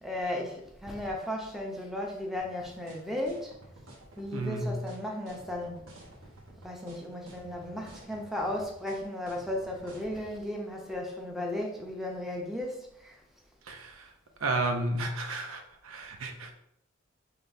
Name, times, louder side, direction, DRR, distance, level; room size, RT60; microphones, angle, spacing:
voice 1, 0.0-3.5 4.2-5.8 6.6-13.1, left 1 dB, ahead, -1 dB, 0.7 m, -35 dB
sound 1, 2.4-10.3, right 1 dB, 70° right, 1.2 m, -51 dB
voice 2, 4.3-4.8 13.7-14.1 14.4-16.5, right 2 dB, 85° right, 4 dB, 0.7 m, -32 dB
5.8 x 3.3 x 2.7 m, 0.74 s
head